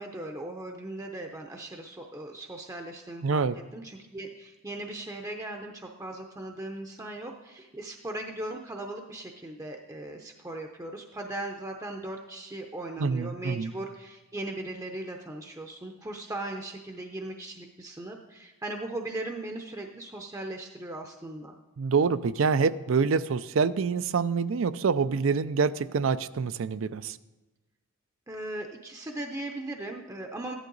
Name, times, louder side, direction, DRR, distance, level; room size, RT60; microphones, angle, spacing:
voice 1, 0.0-3.5 3.7-21.6 28.3-30.5, right 1 dB, 15° right, 3 dB, 0.6 m, -38 dB
voice 2, 3.2-3.6 13.0-13.7 21.8-27.2, right 5 dB, 65° right, 16 dB, 0.4 m, -26 dB
14.0 x 11.0 x 3.9 m, 1.1 s
head